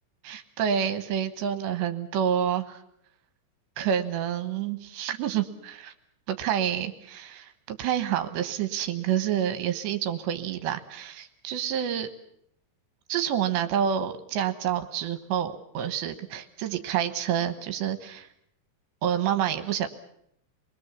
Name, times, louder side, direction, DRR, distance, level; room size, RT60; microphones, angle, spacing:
voice 1, 0.2-2.8 3.8-5.9 6.3-12.1 13.1-18.3 19.0-19.9, right 9 dB, 75° right, 9 dB, 3.1 m, -28 dB
28.0 x 21.5 x 7.2 m, 0.71 s
omnidirectional pair, 5.6 m